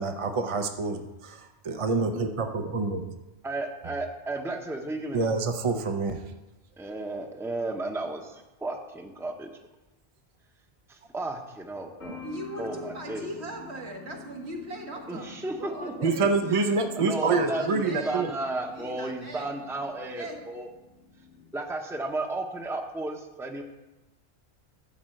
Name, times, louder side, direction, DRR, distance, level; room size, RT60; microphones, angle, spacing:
voice 1, 0.0-3.1 5.1-6.2 16.0-18.3, right 4 dB, 35° right, 5 dB, 0.6 m, -27 dB
voice 2, 3.4-5.3 6.8-9.5 10.9-12.2 12.6-13.3 15.1-16.6 17.0-20.7 21.5-23.6, right 2 dB, 5° right, 3 dB, 0.8 m, -34 dB
sound 1, 12.0-21.5, left 6 dB, 80° left, 2.0 m, -48 dB
voice 3, 12.2-15.3 15.6-16.3 17.2-18.3 18.7-19.5 20.1-20.4, right 1 dB, 75° right, 0 dB, 1.9 m, -39 dB
12.5 x 4.2 x 7.8 m, 1.0 s
omnidirectional pair, 1.1 m